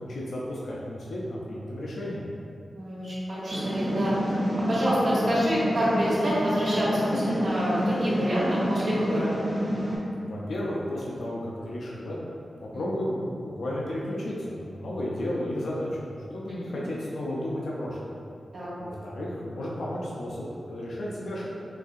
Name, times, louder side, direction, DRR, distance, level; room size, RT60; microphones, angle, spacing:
voice 1, 0.0-2.2 10.2-12.2 12.6-18.1 18.8-21.5, left 1 dB, 90° left, -5 dB, 0.4 m, -33 dB
voice 2, 2.7-4.2 4.7-9.3 16.7-16.8 18.5-18.7, equal, 70° right, -10 dB, 1.2 m, -26 dB
sound 1, 3.5-10.0, equal, 25° right, 0.7 m, -29 dB
3.8 x 2.6 x 2.5 m, 2.5 s
wide cardioid pair, 165°, 0 cm